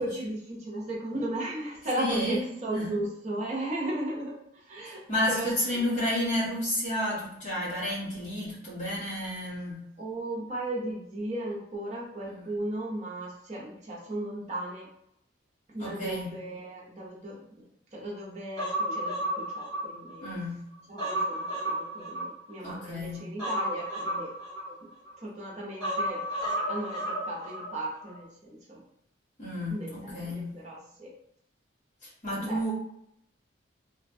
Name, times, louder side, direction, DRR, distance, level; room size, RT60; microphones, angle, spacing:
voice 1, 0.0-5.0 5.3-5.8 10.0-14.9 15.7-17.5 17.9-20.3 20.9-24.3 24.8-24.9 25.2-28.8 29.7-31.1 32.4-32.6, right 1 dB, 35° right, -4 dB, 0.6 m, -36 dB
voice 2, 2.0-2.4 2.7-2.9 4.8-9.8 12.2-12.4 15.8-16.3 20.2-20.6 22.6-23.2 29.4-30.5 32.0-32.7, left 1 dB, 40° left, -7 dB, 1.2 m, -31 dB
Human voice, 18.6-20.4 20.7-22.7 23.4-25.2 25.8-27.7 28.0-28.1, right 1 dB, 20° left, 1.1 m, -32 dB
3.1 x 2.1 x 2.6 m, 0.75 s
head